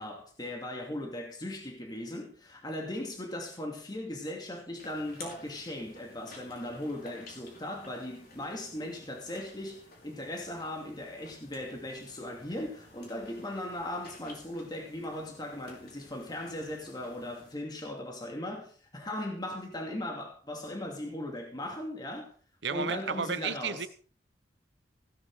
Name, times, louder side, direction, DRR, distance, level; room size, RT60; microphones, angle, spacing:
voice 1, 0.0-22.3 22.7-23.9, left 1 dB, 25° left, 2.4 m, -38 dB
sound 1, 4.8-17.5, left 2 dB, 55° left, 5.1 m, -53 dB
voice 2, 22.6-23.9, right 5 dB, 70° right, 1.0 m, -32 dB
16.5 x 11.0 x 3.8 m
head